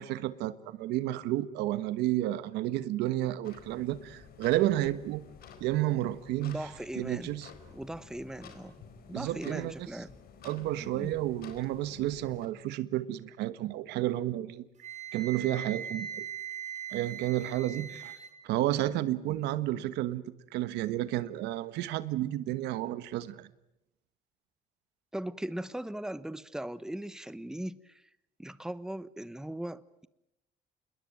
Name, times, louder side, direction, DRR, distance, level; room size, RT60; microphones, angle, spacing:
voice 1, 0.0-5.2 5.6-6.6 7.0-7.5 9.1-9.7 10.4-14.7 15.1-16.3 16.9-18.2 18.4-20.2 20.5-23.5, right 14 dB, 90° right, 1.4 m, -31 dB
sound 1, 3.4-12.5, left 6 dB, 65° left, 4.6 m, -52 dB
voice 2, 6.4-7.3 7.7-10.1 10.8-11.1 25.1-28.1 28.4-30.1, right 1 dB, 5° right, 1.0 m, -39 dB
Wind instrument woodwind instrument, 14.8-18.3, right 8 dB, 45° right, 5.3 m, -40 dB
27.5 x 21.0 x 9.3 m
cardioid pair, 110°, 17 cm